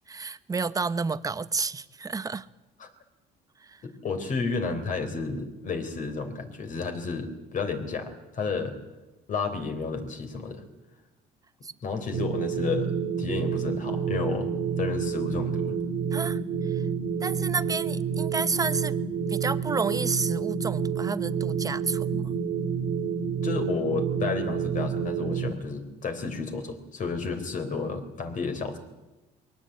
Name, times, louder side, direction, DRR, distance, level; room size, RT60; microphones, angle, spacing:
voice 1, 0.1-2.5 3.6-3.8 11.6-11.7 16.1-16.8 17.2-19.0 19.3-22.4, right 4 dB, 20° right, 14 dB, 0.9 m, -31 dB
voice 2, 3.8-8.8 9.3-10.6 11.8-12.9 13.2-14.5 14.8-15.8 23.4-28.8, left 4 dB, 50° left, 6 dB, 3.7 m, -31 dB
sound 1, 12.1-25.5, right 6 dB, 80° right, 1.5 m, -29 dB
21.5 x 18.5 x 8.9 m, 1.1 s
cardioid pair, 110°, 17 cm